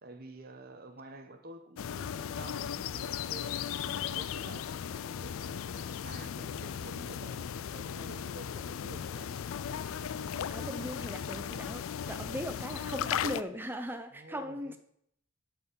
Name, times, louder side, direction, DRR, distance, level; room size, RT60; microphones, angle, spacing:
voice 1, 0.0-9.4 14.1-14.8, right 2 dB, 45° right, 7 dB, 1.0 m, -50 dB
sound 1, 1.8-13.4, left 8 dB, 70° left, 0.3 m, -37 dB
voice 2, 10.5-14.8, equal, 10° right, 7 dB, 0.5 m, -39 dB
12.0 x 4.6 x 5.3 m, 0.71 s
head